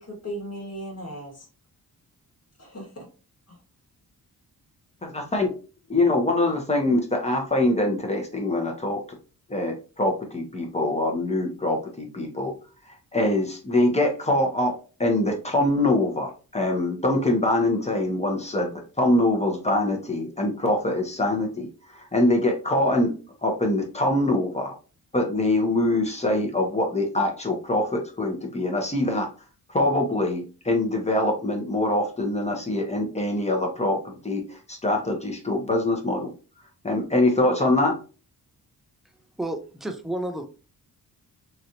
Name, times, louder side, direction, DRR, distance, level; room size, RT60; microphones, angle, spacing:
voice 1, 0.0-1.5 2.6-3.1 3.5-3.6, equal, 40° left, -1 dB, 1.5 m, -37 dB
voice 2, 5.0-5.5 5.9-9.0 9.5-12.5 13.1-14.7 15.0-21.7 21.9-23.1 23.4-24.7 25.1-29.3 29.7-36.3 36.8-37.9, left 1 dB, 15° left, 2 dB, 1.0 m, -24 dB
voice 3, 39.4-40.5, right 1 dB, ahead, 6 dB, 0.5 m, -31 dB
3.1 x 2.6 x 2.8 m, 0.35 s
cardioid pair, 80°, 37 cm